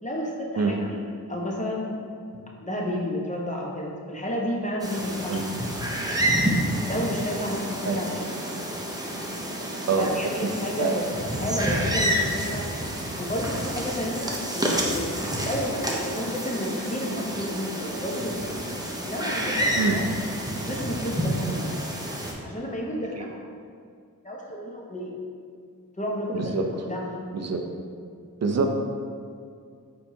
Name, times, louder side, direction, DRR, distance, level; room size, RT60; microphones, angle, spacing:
voice 1, 0.0-2.0 2.6-5.5 6.1-6.4 6.9-8.4 9.3-9.4 10.0-11.1 11.3-12.7 13.2-18.4 19.1-20.1 20.7-21.8 22.4-23.4 24.2-25.1 26.0-27.2, equal, 20° left, -2 dB, 0.9 m, -31 dB
sound 1, 4.8-22.3, equal, 10° right, 0.7 m, -29 dB
voice 2, 26.3-26.6 27.3-27.6 28.4-28.7, right 4 dB, 45° right, 4 dB, 0.6 m, -25 dB
4.4 x 4.2 x 2.8 m, 2.3 s
cardioid pair, 40°, 35 cm